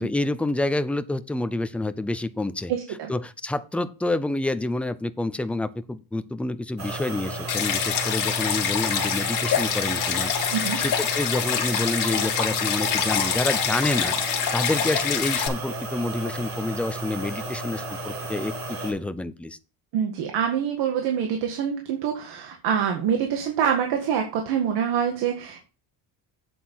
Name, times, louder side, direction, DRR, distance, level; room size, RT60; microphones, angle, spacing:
voice 1, 0.0-14.2 14.5-19.6, left 2 dB, 5° left, 12 dB, 0.4 m, -28 dB
sound 1, 6.8-18.9, right 2 dB, 40° right, 3.9 m, -33 dB
Stream, 7.5-15.5, left 8 dB, 50° left, 2.2 m, -25 dB
voice 2, 10.5-10.8 19.9-25.6, right 8 dB, 80° right, 3 dB, 1.9 m, -25 dB
8.4 x 7.7 x 4.3 m, 0.34 s
cardioid pair, 150°, 41 cm